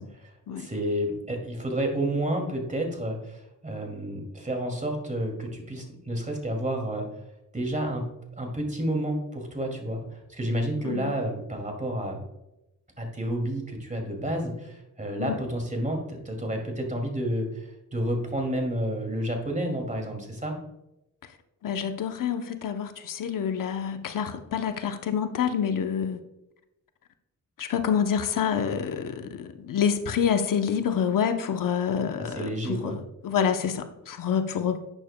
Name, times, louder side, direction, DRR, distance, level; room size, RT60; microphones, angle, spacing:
voice 1, 0.0-7.1 7.5-8.1 8.4-12.2 13.0-20.6 32.2-33.0, right 1 dB, 25° right, 2 dB, 2.4 m, -30 dB
voice 2, 21.6-26.2 27.6-34.8, left 7 dB, 75° left, 8 dB, 0.8 m, -27 dB
11.5 x 8.7 x 2.2 m, 0.89 s
cardioid pair, 75°, 33 cm